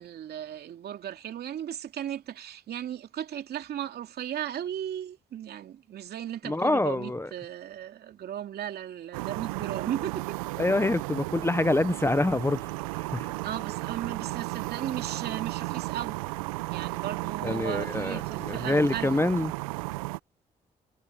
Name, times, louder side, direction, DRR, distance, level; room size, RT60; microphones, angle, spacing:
voice 1, 0.0-10.4 13.4-16.2 16.7-19.2, right 10 dB, 65° right, 2.7 m, -36 dB
voice 2, 6.5-7.3 10.6-12.6 13.0-13.3 17.4-19.5, left 2 dB, 15° left, 0.8 m, -26 dB
sound 1, 9.1-20.2, right 22 dB, 90° right, 0.6 m, -34 dB
hypercardioid pair, 45°, 17 cm